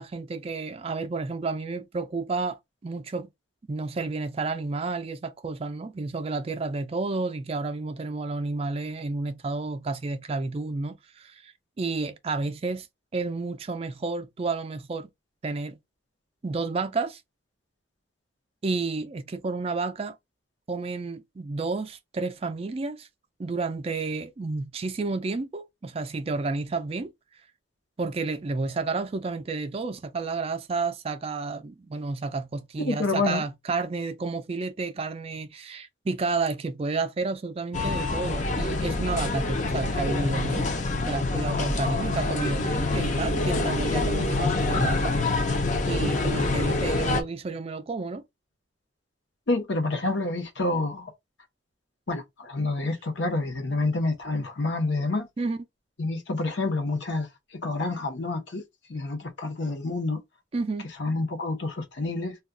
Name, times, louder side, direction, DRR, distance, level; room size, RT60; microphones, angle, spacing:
voice 1, 0.0-3.3 3.7-12.9 13.1-15.1 15.4-15.8 16.4-17.2 18.6-20.2 20.7-23.1 23.4-27.1 28.0-40.7 41.1-45.1 45.9-48.2 55.4-55.6 60.5-60.9, right 3 dB, 30° right, 0.3 m, -31 dB
voice 2, 32.8-33.4 49.5-51.1 52.1-55.3 56.0-57.3 57.6-58.6 58.9-60.2 61.0-62.4, left 2 dB, 70° left, 0.8 m, -28 dB
sound 1, 37.7-47.2, left 2 dB, 40° left, 0.6 m, -26 dB
2.3 x 2.2 x 3.7 m
head